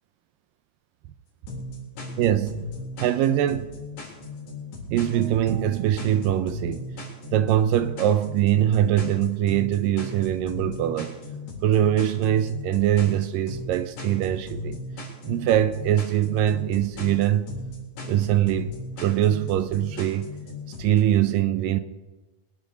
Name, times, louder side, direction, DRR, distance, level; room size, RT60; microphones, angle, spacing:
sound 1, 1.5-21.0, left 2 dB, 55° left, 5.1 m, -37 dB
voice 1, 2.2-2.7 3.0-3.7 4.9-6.9 7.3-11.2 11.6-14.8 15.3-17.6 18.0-18.7 19.0-20.3 20.8-21.8, right 11 dB, 80° right, 2.2 m, -22 dB
22.5 x 10.5 x 5.2 m
omnidirectional pair, 4.4 m